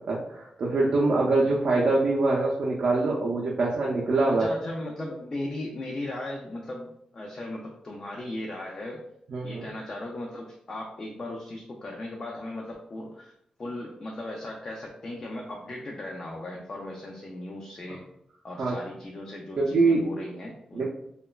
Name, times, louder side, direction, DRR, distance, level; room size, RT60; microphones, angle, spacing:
voice 1, 0.1-4.5 9.3-9.7 18.6-18.8 19.6-20.1 20.7-20.8, right 3 dB, 55° right, -4 dB, 0.4 m, -24 dB
voice 2, 4.3-9.0 9.4-13.3 13.6-18.1 18.4-20.8, left 1 dB, 30° left, -1 dB, 0.3 m, -37 dB
2.9 x 2.1 x 2.3 m, 0.74 s
wide cardioid pair, 165°, 2 cm